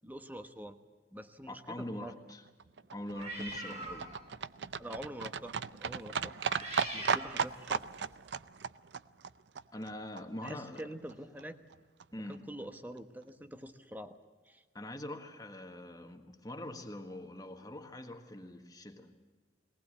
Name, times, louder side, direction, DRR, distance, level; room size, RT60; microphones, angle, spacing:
voice 1, 0.0-0.8 1.1-2.2 4.8-5.5 5.8-6.3 6.6-7.8 10.4-11.6 12.3-14.1 14.4-14.6, equal, 10° right, 8 dB, 1.2 m, -45 dB
voice 2, 1.5-2.4 2.9-4.1 9.7-10.9 12.1-12.4 14.7-19.1, left 1 dB, 20° left, 4 dB, 1.6 m, -43 dB
Livestock farm animals working animals, 2.3-10.5 10.8-10.9 11.1-11.2 11.4-11.5 11.7-11.8 12.0-12.1 12.3-12.4 12.6-12.7 13.0-13.1, right 6 dB, 90° right, 0.6 m, -36 dB
sound 1, 3.1-4.3 4.7-5.0 6.2-8.0, right 1 dB, 40° right, 5.4 m, -44 dB
21.5 x 19.0 x 8.2 m, 1.4 s
head